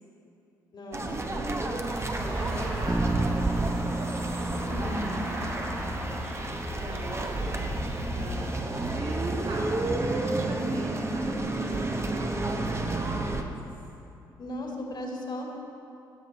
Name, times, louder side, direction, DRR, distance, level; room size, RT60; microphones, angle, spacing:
voice 1, 0.7-1.5 4.6-5.1 14.4-15.5, left 1 dB, 50° left, 0 dB, 2.1 m, -36 dB
sound 1, 0.9-13.4, right 2 dB, 25° right, 1.0 m, -31 dB
voice 2, 1.9-4.0 4.7-5.8 6.7-7.5 8.1-13.7, right 2 dB, 45° right, -3 dB, 1.5 m, -41 dB
sound 2, 2.2-8.6, equal, 80° right, 2.7 m, -37 dB
Bass guitar, 2.9-6.9, right 2 dB, 10° right, 0.4 m, -34 dB
16.5 x 7.6 x 4.1 m, 2.7 s
hypercardioid pair, 45°, 10 cm